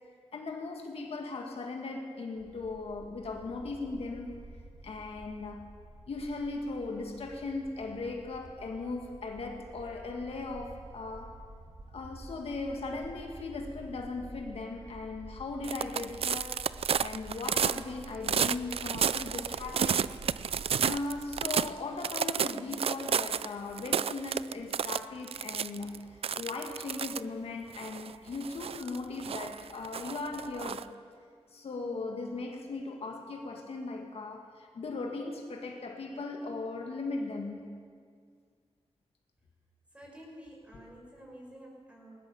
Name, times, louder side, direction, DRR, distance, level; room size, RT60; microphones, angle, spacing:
voice 1, 0.3-4.3 4.8-5.7 6.1-11.4 11.9-16.6 17.0-20.1 20.8-30.9 31.5-37.7, left 3 dB, 65° left, 2 dB, 2.0 m, -38 dB
sound 1, 2.4-21.7, right 2 dB, 45° right, 2.7 m, -50 dB
sound 2, 15.6-21.7 22.0-23.5 23.8-26.0 26.2-27.2 27.7-30.8, right 8 dB, 65° right, 0.4 m, -31 dB
voice 2, 39.9-42.2, equal, 10° right, -2 dB, 5.8 m, -50 dB
20.0 x 19.5 x 7.1 m, 2.1 s
wide cardioid pair, 165°, 11 cm